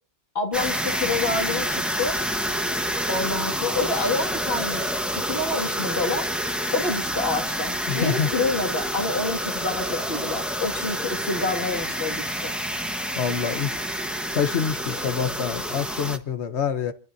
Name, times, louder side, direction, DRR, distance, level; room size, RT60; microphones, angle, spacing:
voice 1, 0.3-2.2 3.1-6.3 6.7-12.5 14.9-15.0, left 3 dB, 65° left, 2.5 m, -28 dB
sound 1, 0.5-16.2, equal, ahead, 1.1 m, -28 dB
voice 2, 7.9-8.3 13.2-14.0 14.3-16.9, left 7 dB, 85° left, 1.3 m, -26 dB
27.5 x 13.5 x 2.7 m
omnidirectional pair, 1.1 m